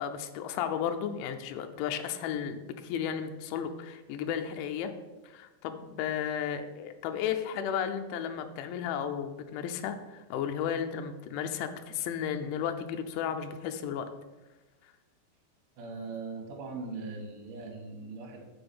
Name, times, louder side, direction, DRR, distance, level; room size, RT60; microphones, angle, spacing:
voice 1, 0.0-4.9 5.2-14.1, left 8 dB, 80° left, 6 dB, 2.7 m, -34 dB
voice 2, 15.7-18.4, right 3 dB, 60° right, 0 dB, 2.3 m, -40 dB
6.1 x 5.8 x 6.9 m, 1.1 s
omnidirectional pair, 5.8 m